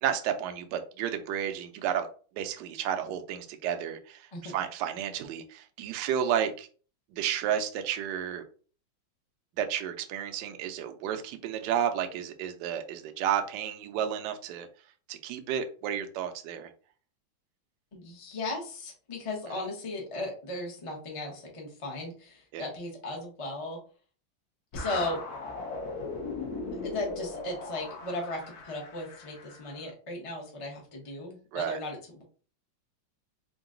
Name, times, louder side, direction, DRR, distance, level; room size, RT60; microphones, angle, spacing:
voice 1, 0.0-2.1 2.4-6.7 7.1-8.4 9.6-14.7 15.1-16.7 22.5-22.7 31.5-31.8, right 9 dB, 70° right, 6 dB, 1.0 m, -32 dB
voice 2, 17.9-23.8 24.7-25.2 26.8-32.2, left 2 dB, 35° left, 0 dB, 0.5 m, -36 dB
sound 1, 24.7-29.8, left 3 dB, 60° left, 1.1 m, -38 dB
3.8 x 2.2 x 3.7 m, 0.39 s
omnidirectional pair, 2.2 m